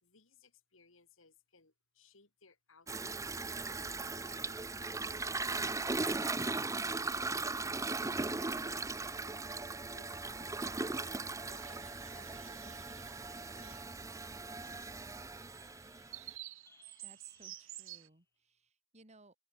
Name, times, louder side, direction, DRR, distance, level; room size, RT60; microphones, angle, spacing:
voice 1, 0.0-3.7 4.2-4.6 9.8-11.2 11.4-11.9 12.1-12.9 13.5-13.8, left 4 dB, 90° left, 3.1 m, -64 dB
Toilet flush, 2.9-16.3, right 3 dB, 15° right, 0.8 m, -38 dB
sound 1, 11.4-18.1, right 15 dB, 85° right, 2.2 m, -53 dB
sound 2, 12.9-18.2, left 3 dB, 15° left, 5.6 m, -68 dB
voice 2, 17.0-19.4, right 3 dB, 35° right, 3.7 m, -62 dB
open air
head